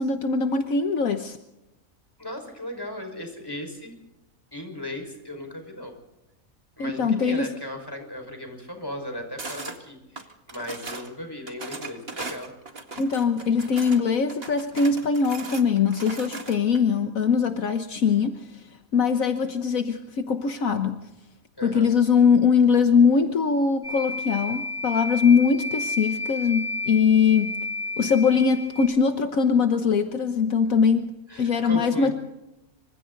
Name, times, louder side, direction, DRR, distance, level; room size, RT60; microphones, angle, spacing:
voice 1, 0.0-1.4 6.8-7.5 13.0-18.6 18.9-21.0 21.6-27.5 28.0-32.1, left 5 dB, 70° left, 7 dB, 1.6 m, -22 dB
voice 2, 2.2-3.9 4.5-5.9 6.8-12.5 21.6-21.9 31.3-32.1, left 1 dB, 15° left, 4 dB, 5.4 m, -36 dB
sound 1, 9.4-9.8 10.2-11.1 11.5-14.0 14.3-16.8, right 3 dB, 45° right, 2.2 m, -38 dB
sound 2, 23.8-28.9, left 2 dB, 30° left, 6.6 m, -32 dB
27.5 x 25.0 x 4.0 m, 0.92 s
omnidirectional pair, 1.5 m